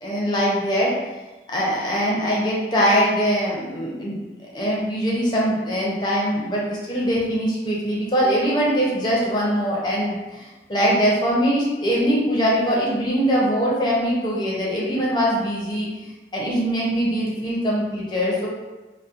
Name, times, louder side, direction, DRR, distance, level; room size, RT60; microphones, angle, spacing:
voice 1, 0.0-0.9 1.5-4.2 4.5-15.9 16.3-18.5, equal, 25° left, -5 dB, 0.5 m, -22 dB
2.7 x 2.0 x 2.4 m, 1.2 s
head